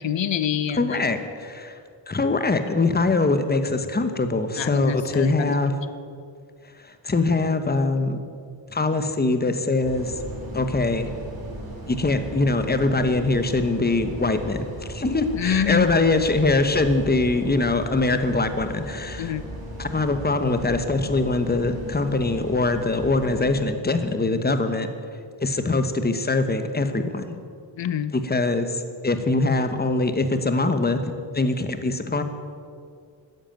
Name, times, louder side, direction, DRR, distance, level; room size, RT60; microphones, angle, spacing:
voice 1, 0.0-1.0 4.6-5.5 15.4-15.9 19.2-19.4 27.8-28.1, left 9 dB, 80° left, 13 dB, 0.7 m, -26 dB
voice 2, 0.7-1.8 2.1-5.7 6.8-8.2 8.7-10.1 10.5-11.1 11.9-19.3 19.8-24.9 25.4-27.3 28.1-31.0 31.3-32.2, left 3 dB, 20° left, 9 dB, 1.0 m, -23 dB
sound 1, 9.8-23.6, equal, 55° right, 5.3 m, -36 dB
13.0 x 11.0 x 8.9 m, 2.2 s
wide cardioid pair, 160°, 44 cm